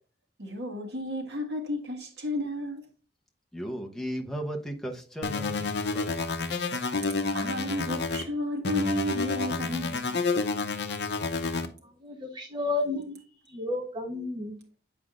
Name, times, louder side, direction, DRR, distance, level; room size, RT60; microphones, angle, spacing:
voice 1, 0.4-2.9 7.1-10.1, left 1 dB, 70° right, 1.6 m, -32 dB
voice 2, 3.5-6.0, right 1 dB, 5° left, 0.9 m, -36 dB
sound 1, 5.2-8.2 8.6-11.7, left 4 dB, 70° left, 0.7 m, -29 dB
voice 3, 12.0-13.1 13.5-14.6, left 2 dB, 25° right, 1.1 m, -31 dB
7.9 x 5.0 x 2.5 m
head